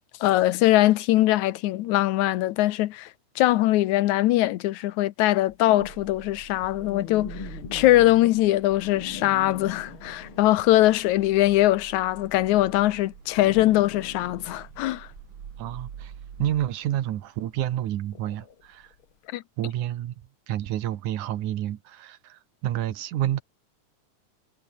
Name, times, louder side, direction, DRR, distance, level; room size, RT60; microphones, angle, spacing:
voice 1, 0.2-15.1 19.3-19.4, left 15 dB, 75° left, 2.1 m, -22 dB
sound 1, 5.4-11.0 11.3-19.1, left 7 dB, 45° left, 2.7 m, -43 dB
sound 2, 5.8-16.7, right 8 dB, 45° right, 1.9 m, -46 dB
voice 2, 15.6-16.1 16.4-18.9 19.6-20.1 20.5-23.4, right 12 dB, 75° right, 2.7 m, -29 dB
omnidirectional pair, 3.6 m